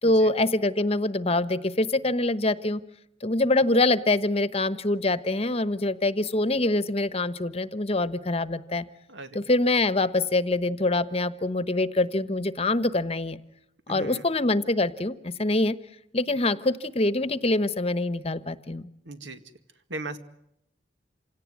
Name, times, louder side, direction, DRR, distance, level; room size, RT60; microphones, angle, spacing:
voice 1, 0.0-2.8 3.2-8.9 9.3-13.4 13.9-15.8 16.1-18.9, left 2 dB, 35° left, 14 dB, 1.0 m, -25 dB
voice 2, 9.1-9.5 13.9-14.3 19.1-19.4 19.9-20.2, right 2 dB, 80° right, 9 dB, 2.2 m, -38 dB
27.5 x 18.0 x 9.6 m, 0.78 s
head